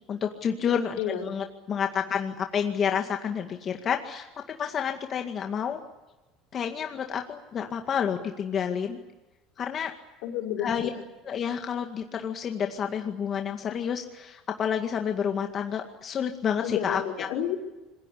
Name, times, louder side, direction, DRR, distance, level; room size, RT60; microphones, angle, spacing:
voice 1, 0.1-5.8 6.5-9.0 9.6-9.9 10.6-10.9 11.2-17.3, left 7 dB, 40° left, 4 dB, 2.0 m, -29 dB
voice 2, 10.2-11.0 16.6-17.6, left 10 dB, 75° left, 2 dB, 4.5 m, -31 dB
26.5 x 21.5 x 8.5 m, 1.1 s
supercardioid pair, 105°, 0 cm